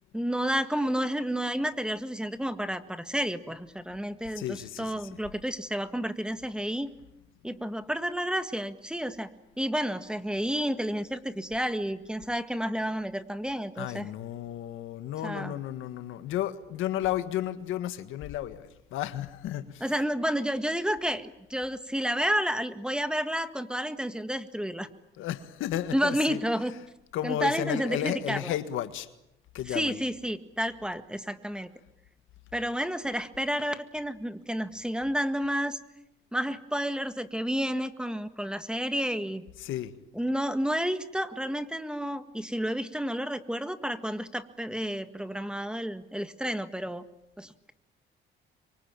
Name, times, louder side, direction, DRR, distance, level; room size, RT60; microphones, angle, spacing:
voice 1, 0.1-6.9 7.4-9.3 9.6-14.1 15.2-15.6 19.8-24.9 25.9-26.7 27.2-28.5 29.7-31.7 32.5-35.8 36.3-39.4 40.1-47.0 47.4-47.7, equal, 5° right, 11 dB, 1.7 m, -30 dB
voice 2, 4.4-5.0 13.7-19.9 25.2-26.8 27.1-29.1 29.5-30.0 39.6-39.9, left 12 dB, 90° left, 11 dB, 1.7 m, -33 dB
25.5 x 23.5 x 9.0 m, 0.84 s
cardioid pair, 90°, 20 cm